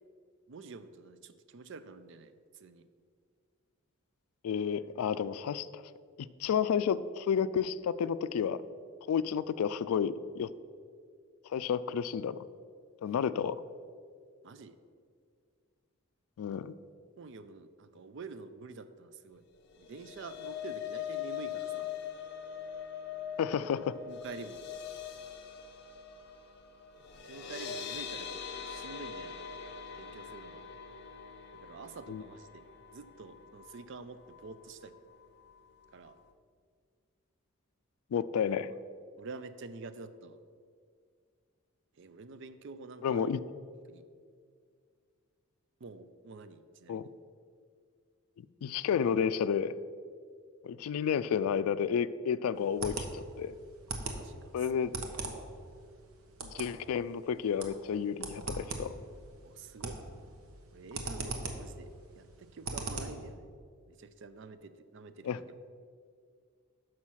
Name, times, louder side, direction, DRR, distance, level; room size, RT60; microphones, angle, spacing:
voice 1, 0.5-2.9 9.3-9.4 13.0-13.1 14.4-14.8 16.5-16.6 17.2-19.4 19.8-21.9 24.1-24.6 27.3-29.4 30.0-30.6 31.6-32.6 32.9-34.9 35.9-36.2 39.2-40.4 42.0-43.3 43.9-44.0 45.8-47.1 54.1-55.0 59.4-60.0 60.7-61.9 62.2-63.5 63.9-65.4, right 4 dB, 55° right, 12 dB, 0.4 m, -48 dB
voice 2, 4.4-5.8 6.4-8.6 9.1-10.5 11.5-12.4 13.0-13.6 16.4-16.7 23.4-24.0 32.1-32.2 38.1-38.7 43.0-43.4 46.9-47.0 48.6-49.7 50.6-53.5 54.5-54.9 56.4-58.9 65.2-65.4, left 7 dB, 85° left, 15 dB, 0.3 m, -31 dB
sound 1, 19.7-34.0 34.3-34.6 34.9-35.0, left 8 dB, 50° left, 0.7 m, -42 dB
sound 2, 52.6-63.3, right 3 dB, 80° right, 1.0 m, -41 dB
6.2 x 5.7 x 6.2 m, 2.1 s
head